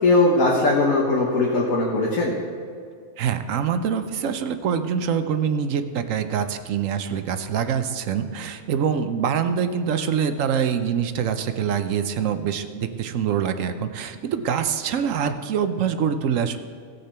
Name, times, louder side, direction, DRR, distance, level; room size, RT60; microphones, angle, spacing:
voice 1, 0.0-2.3, left 2 dB, 75° left, -3 dB, 1.7 m, -19 dB
voice 2, 3.2-16.6, right 7 dB, 70° right, 9 dB, 1.0 m, -25 dB
17.0 x 6.6 x 4.4 m, 2.3 s
omnidirectional pair, 1.5 m